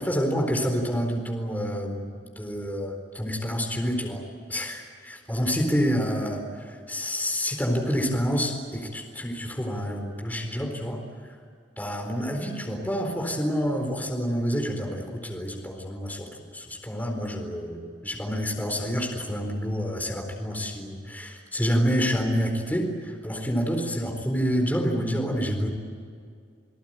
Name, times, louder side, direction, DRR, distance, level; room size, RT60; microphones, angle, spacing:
voice 1, 0.0-2.1 2.4-4.2 4.5-11.0 11.8-16.3 16.5-25.7, equal, 10° left, 2 dB, 4.2 m, -28 dB
29.5 x 18.5 x 9.1 m, 2.2 s
head